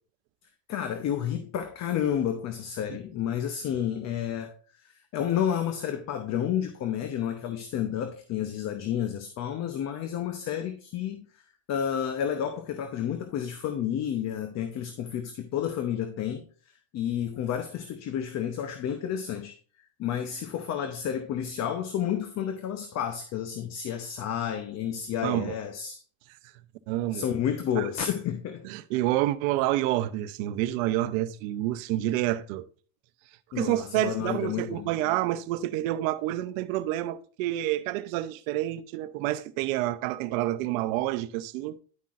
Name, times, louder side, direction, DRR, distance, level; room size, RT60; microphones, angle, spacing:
voice 1, 0.7-11.4 11.7-19.6 20.0-26.0 27.1-28.6 33.5-34.9, left 9 dB, 40° left, 0.8 m, -31 dB
voice 2, 25.2-25.6 26.9-27.2 27.8-27.9 28.6-32.6 33.6-41.8, right 15 dB, 75° right, 0.7 m, -28 dB
10.5 x 5.7 x 2.5 m
supercardioid pair, 125°, 41 cm